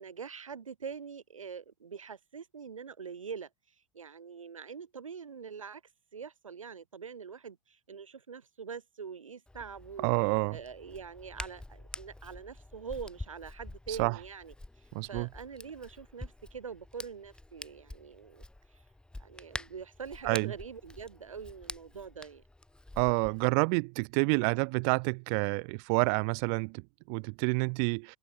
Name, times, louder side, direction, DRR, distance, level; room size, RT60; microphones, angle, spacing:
voice 1, 0.0-3.5 3.9-5.8 6.1-10.1 10.5-14.5 15.0-18.4 19.2-22.4, right 6 dB, 80° right, 2.3 m, -44 dB
Hands, 9.5-23.5, left 2 dB, 5° left, 3.4 m, -47 dB
voice 2, 10.0-10.6 13.9-14.2 14.9-15.3 20.2-20.5 23.0-28.2, right 40 dB or more, 50° right, 1.0 m, -28 dB
open air
figure-of-eight pair, 95°, 17 cm